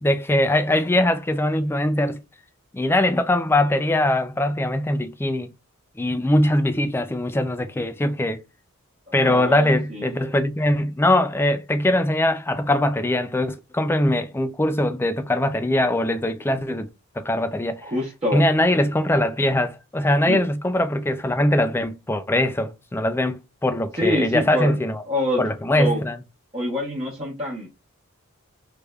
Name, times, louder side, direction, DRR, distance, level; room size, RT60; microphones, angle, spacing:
voice 1, 0.0-2.2 2.7-5.5 6.0-8.4 9.1-16.9 17.2-17.9 18.3-25.0 25.4-26.2, left 1 dB, 10° left, 0.3 m, -21 dB
voice 2, 9.1-10.2 17.8-18.4 20.3-20.4 23.9-25.4 25.7-26.0 26.5-27.7, left 1 dB, 30° right, 0.8 m, -26 dB
3.3 x 3.2 x 2.3 m
head